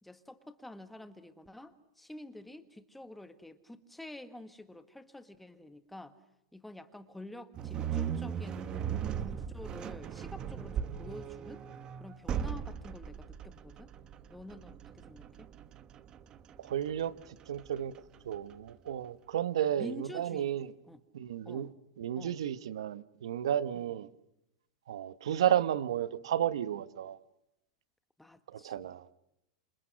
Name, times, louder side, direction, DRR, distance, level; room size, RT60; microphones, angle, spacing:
voice 1, 0.0-6.1 6.5-8.9 9.2-11.6 12.0-13.9 14.3-15.5 19.8-21.0 21.4-21.7 22.1-22.3 23.7-23.9 28.2-28.9, left 1 dB, 5° left, 1.6 m, -48 dB
sound 1, 7.5-18.7, right 8 dB, 30° right, 1.1 m, -38 dB
voice 2, 16.6-17.1 17.5-17.9 18.2-20.7 21.1-21.7 22.0-24.1 24.9-27.2 28.5-29.1, right 10 dB, 80° right, 1.2 m, -32 dB
28.0 x 27.0 x 6.4 m
hypercardioid pair, 130°, 3 cm